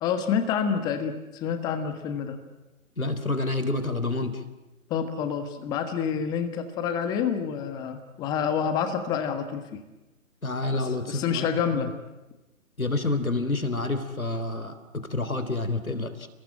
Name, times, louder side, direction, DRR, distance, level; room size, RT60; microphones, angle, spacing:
voice 1, 0.0-2.4 4.9-9.8 10.7-11.9, left 7 dB, 10° left, 9 dB, 1.4 m, -28 dB
voice 2, 3.0-4.4 10.4-11.4 12.8-16.3, left 2 dB, 75° left, 10 dB, 3.7 m, -28 dB
29.5 x 20.5 x 8.8 m, 1.1 s
figure-of-eight pair, 140°, 42 cm